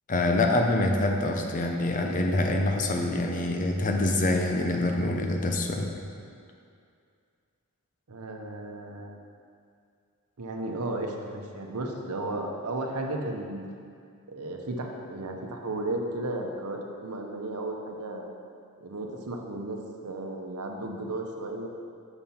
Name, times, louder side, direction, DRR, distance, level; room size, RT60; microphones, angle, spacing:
voice 1, 0.1-5.9, left 2 dB, 35° left, 3 dB, 0.6 m, -25 dB
voice 2, 8.1-9.1 10.4-13.7 14.3-18.3 18.8-19.8 20.0-21.7, right 2 dB, 85° right, 2 dB, 0.8 m, -34 dB
6.9 x 5.4 x 4.4 m, 2.3 s
head